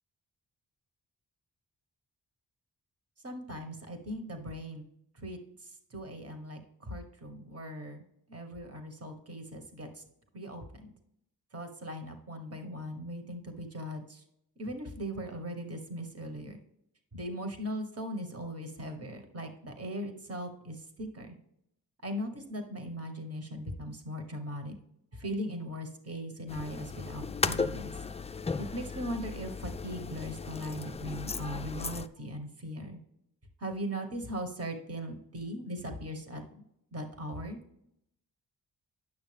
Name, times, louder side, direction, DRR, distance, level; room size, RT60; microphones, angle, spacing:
voice 1, 3.2-4.8 5.2-5.4 5.9-8.0 8.3-9.9 10.3-10.9 11.5-14.2 14.6-16.6 17.1-21.4 22.0-24.8 25.1-27.9 28.6-33.0 33.6-36.4 36.9-37.6, equal, 35° right, 6 dB, 1.4 m, -39 dB
sound 1, 26.5-32.1, left 4 dB, 15° left, 0.3 m, -36 dB
9.8 x 6.2 x 3.4 m, 0.77 s
cardioid pair, 60°, 41 cm